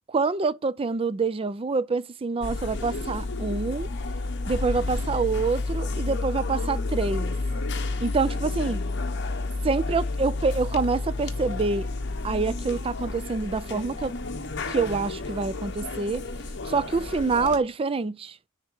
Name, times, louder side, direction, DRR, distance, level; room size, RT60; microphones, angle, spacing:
voice 1, 0.1-3.9 4.5-7.3 8.0-8.8 9.6-11.9 12.2-14.1 14.7-16.2 16.6-18.4, right 4 dB, 30° right, 0.4 m, -26 dB
sound 1, 2.4-17.6, left 2 dB, 60° left, 1.2 m, -30 dB
10.5 x 3.6 x 6.3 m
head